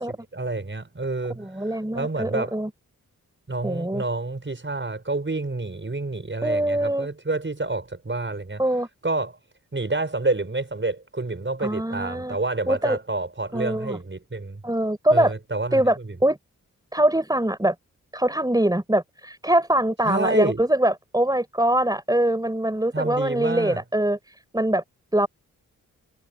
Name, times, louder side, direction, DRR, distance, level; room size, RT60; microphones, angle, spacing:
voice 1, 0.0-1.5 1.9-2.6 3.5-8.6 9.0-9.4 9.7-14.6 15.1-16.2 20.0-20.6 22.9-23.8, right 2 dB, 35° right, 6.2 m, -28 dB
voice 2, 1.4-2.7 3.6-4.0 6.4-7.1 8.6-8.9 11.6-12.4 12.7-13.0 13.5-14.0 14.6-15.3 15.7-16.4 16.9-17.7 18.1-24.8 25.1-25.3, right 1 dB, 10° right, 4.6 m, -23 dB
supercardioid pair, 45°, 35 cm